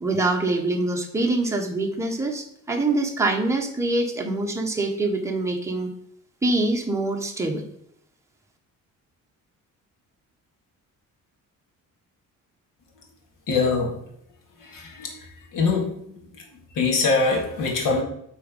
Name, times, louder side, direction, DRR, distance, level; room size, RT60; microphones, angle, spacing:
voice 1, 0.0-5.9 6.4-7.6, right 2 dB, 10° right, 1 dB, 1.0 m, -24 dB
voice 2, 13.5-14.0 14.6-15.1 15.5-16.2 16.8-18.0, left 4 dB, 80° left, 2 dB, 2.1 m, -23 dB
8.3 x 4.1 x 5.3 m, 0.72 s
cardioid pair, 160°, 32 cm